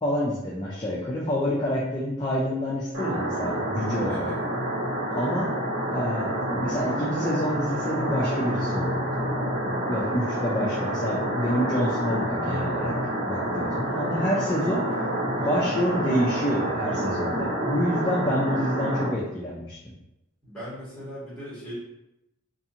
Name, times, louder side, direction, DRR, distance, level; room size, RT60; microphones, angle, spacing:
voice 1, 0.0-4.3 5.2-5.5 5.9-9.3 9.6-12.9 13.2-14.8 15.4-19.9, equal, 20° left, -5 dB, 0.3 m, -28 dB
sound 1, 2.9-19.1, right 1 dB, 90° right, 1.3 m, -28 dB
voice 2, 4.1-4.4 5.1-5.4 13.8-14.0 14.6-14.7 15.4-15.7 20.4-21.7, equal, 5° left, -10 dB, 1.3 m, -40 dB
2.6 x 2.5 x 2.7 m, 0.90 s
head